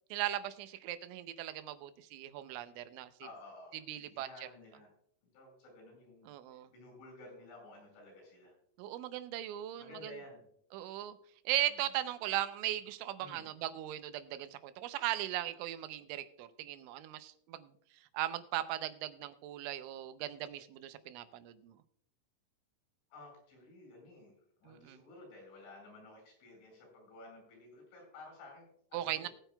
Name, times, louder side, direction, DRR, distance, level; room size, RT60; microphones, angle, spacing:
voice 1, 0.1-3.1 3.9-4.5 6.3-6.7 8.8-10.1 10.7-11.2 11.5-17.7 18.1-21.8 24.7-25.0 28.9-29.3, right 13 dB, 85° right, 12 dB, 3.1 m, -38 dB
voice 2, 3.2-4.9 5.3-8.6 9.8-10.4 11.7-11.8 13.2-13.5 23.1-24.3 24.6-29.3, left 2 dB, 80° left, 1 dB, 7.2 m, -54 dB
19.5 x 9.0 x 2.2 m, 0.66 s
omnidirectional pair, 5.4 m